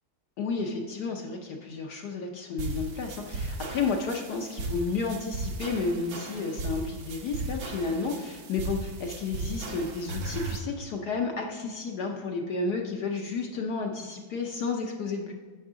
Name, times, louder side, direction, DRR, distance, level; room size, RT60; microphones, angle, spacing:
voice 1, 0.4-15.3, left 4 dB, 65° left, 2 dB, 1.1 m, -32 dB
sound 1, 2.6-10.6, right 3 dB, 70° right, 1.6 m, -36 dB
10.0 x 5.9 x 3.6 m, 1.5 s
omnidirectional pair, 2.3 m